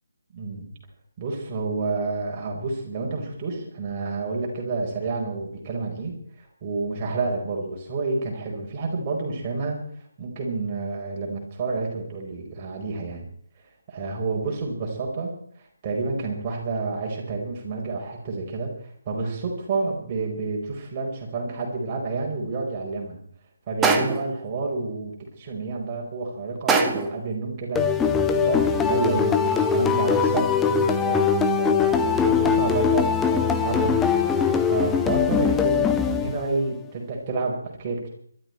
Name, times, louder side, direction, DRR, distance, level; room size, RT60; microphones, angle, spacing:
voice 1, 0.3-0.7 1.2-9.8 10.2-13.2 13.9-15.4 15.8-18.7 19.1-23.2 23.7-27.9 28.3-34.0 34.7-38.1, right 3 dB, 25° right, 0 dB, 4.7 m, -29 dB
sound 1, 23.8-24.4 26.7-27.3, right 4 dB, 10° right, 1.2 m, -22 dB
sound 2, 27.8-36.7, left 6 dB, 10° left, 0.9 m, -21 dB
22.5 x 12.5 x 4.5 m, 0.63 s
figure-of-eight pair, 145°, 0 cm